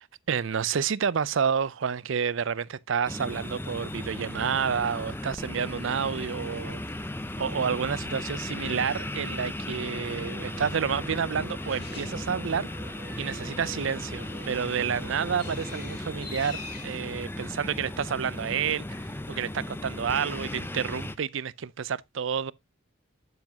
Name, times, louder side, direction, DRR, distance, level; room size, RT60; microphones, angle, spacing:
voice 1, 0.0-12.7 13.2-22.5, right 7 dB, 65° right, 0.5 m, -30 dB
sound 1, 3.0-21.1, left 1 dB, 10° left, 0.6 m, -36 dB
sound 2, 9.9-15.8, right 3 dB, 30° right, 0.9 m, -47 dB
Bird, 11.6-18.1, left 3 dB, 55° left, 6.7 m, -47 dB
9.5 x 7.1 x 2.8 m
head